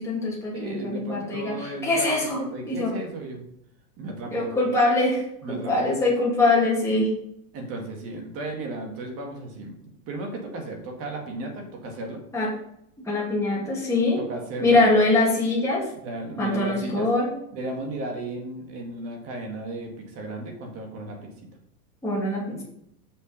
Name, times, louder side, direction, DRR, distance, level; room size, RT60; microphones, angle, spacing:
voice 1, 0.0-2.4 2.7-2.9 4.3-5.2 5.5-7.1 12.3-12.5 13.0-14.2 14.6-15.9 16.4-17.3 22.0-22.6, left 2 dB, 5° left, -6 dB, 2.8 m, -23 dB
voice 2, 0.5-3.4 4.0-4.5 5.4-6.0 7.5-12.2 14.2-14.8 15.9-17.1 17.5-21.3, right 2 dB, 30° right, 2 dB, 1.9 m, -34 dB
6.4 x 6.0 x 5.4 m, 0.75 s
supercardioid pair, 150°, 47 cm